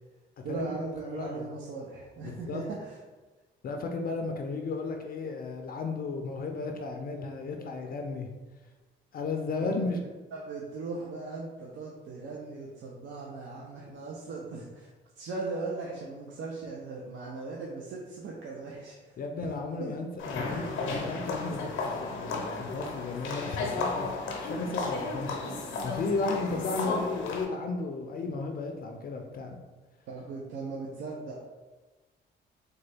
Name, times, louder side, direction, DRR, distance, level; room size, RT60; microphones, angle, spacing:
voice 1, 0.4-3.0 9.7-9.8 10.3-19.5 19.8-19.9 20.5-20.7 30.1-31.4, right 3 dB, 70° right, -3 dB, 0.6 m, -38 dB
voice 2, 1.1-1.5 2.2-2.6 3.6-8.3 9.1-10.0 19.2-24.1 24.4-25.4 25.8-29.6, left 3 dB, 50° left, 3 dB, 0.4 m, -34 dB
sound 1, 20.2-27.4, left 3 dB, 90° left, 0.7 m, -34 dB
3.7 x 2.2 x 3.3 m, 1.2 s
cardioid pair, 90°, 20 cm